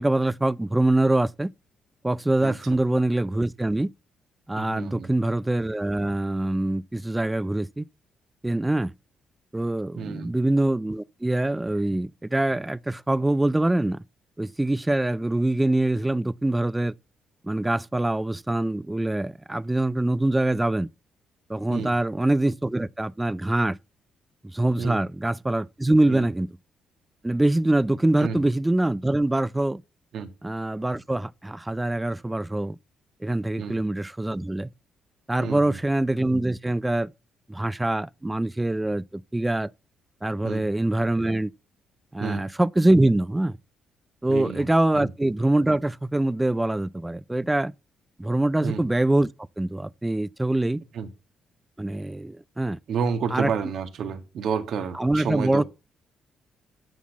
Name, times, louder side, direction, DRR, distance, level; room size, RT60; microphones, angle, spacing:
voice 1, 0.0-1.5 2.0-3.9 4.5-7.9 8.4-8.9 9.5-14.0 14.4-16.9 17.4-20.9 21.5-23.8 24.4-26.5 27.2-29.8 30.4-32.8 33.2-34.7 35.3-37.1 37.5-39.7 40.2-41.5 42.1-43.6 44.2-47.7 48.2-49.3 49.6-50.8 51.8-52.8 53.3-53.5 55.0-55.6, right 1 dB, 10° right, 0.4 m, -24 dB
voice 2, 4.6-5.1 10.0-10.3 21.7-22.0 24.8-25.0 26.1-26.3 28.2-28.4 30.1-30.3 33.6-33.8 35.4-35.8 40.4-40.7 42.2-42.5 44.3-44.7 44.9-45.1 48.6-48.8 50.9-51.1 52.9-55.6, right 6 dB, 65° right, 1.8 m, -30 dB
13.0 x 4.5 x 7.2 m
cardioid pair, 90°, 0 cm